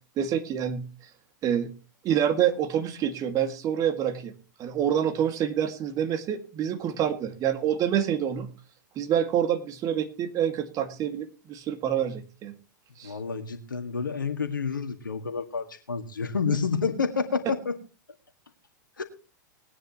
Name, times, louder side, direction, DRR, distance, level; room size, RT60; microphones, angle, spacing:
voice 1, 0.2-0.9 1.4-1.7 2.0-4.3 4.6-8.5 9.0-12.5 13.0-13.1, right 9 dB, 35° right, 8 dB, 2.0 m, -27 dB
voice 2, 13.0-17.8 19.0-19.1, left 5 dB, 80° left, 6 dB, 1.9 m, -29 dB
20.0 x 9.9 x 3.0 m, 0.33 s
figure-of-eight pair, 100°, 11 cm